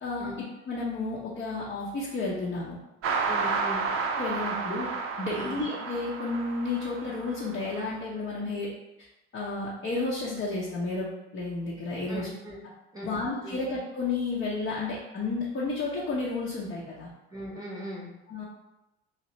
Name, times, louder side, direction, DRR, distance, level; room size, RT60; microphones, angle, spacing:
voice 1, 0.0-2.8 3.7-3.8 4.2-4.9 5.2-8.7 9.3-12.3 13.0-17.1 18.3-18.4, left 3 dB, 35° left, -6 dB, 0.8 m, -32 dB
sound 1, 3.0-7.8, right 4 dB, 40° right, 0.6 m, -31 dB
voice 2, 3.3-3.8 5.4-5.6 12.1-12.6 12.9-13.6 17.3-18.1, equal, 10° right, -6 dB, 1.0 m, -39 dB
2.9 x 2.9 x 3.0 m, 0.95 s
figure-of-eight pair, 60°, 34 cm